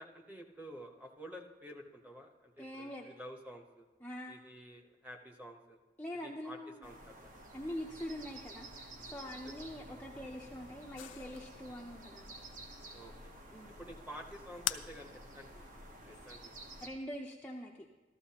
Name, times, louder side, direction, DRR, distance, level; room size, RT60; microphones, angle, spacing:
voice 1, 0.0-3.9 4.3-5.8 6.2-7.3 9.2-9.3 12.9-13.3 13.8-16.5, equal, 10° right, 2 dB, 1.0 m, -51 dB
voice 2, 2.6-3.1 4.0-4.3 6.0-6.8 7.5-12.3 13.5-13.8 16.0-16.1 16.8-17.9, equal, 10° left, -2 dB, 0.5 m, -44 dB
sound 1, 6.8-16.9, right 1 dB, 45° right, 1.0 m, -52 dB
sound 2, 11.0-16.2, left 13 dB, 90° left, 0.4 m, -46 dB
13.5 x 13.5 x 2.9 m, 1.3 s
head